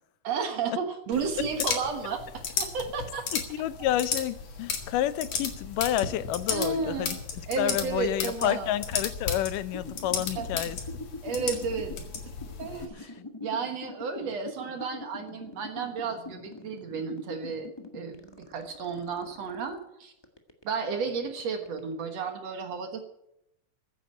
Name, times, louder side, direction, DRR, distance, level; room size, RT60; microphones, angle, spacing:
voice 1, 0.2-3.3 6.5-7.2 7.5-8.7 10.4-10.5 11.2-11.9 12.6-13.1 13.4-20.1 20.6-23.0, right 5 dB, 60° right, 6 dB, 2.4 m, -32 dB
sound 1, 1.1-12.9, left 6 dB, 55° left, 3.0 m, -34 dB
voice 2, 3.3-10.8 13.0-13.1, left 12 dB, 90° left, 15 dB, 2.4 m, -30 dB
sound 2, 9.7-19.8 20.2-21.9, left 3 dB, 25° left, 0.5 m, -43 dB
15.0 x 10.0 x 8.2 m, 0.82 s
omnidirectional pair, 3.7 m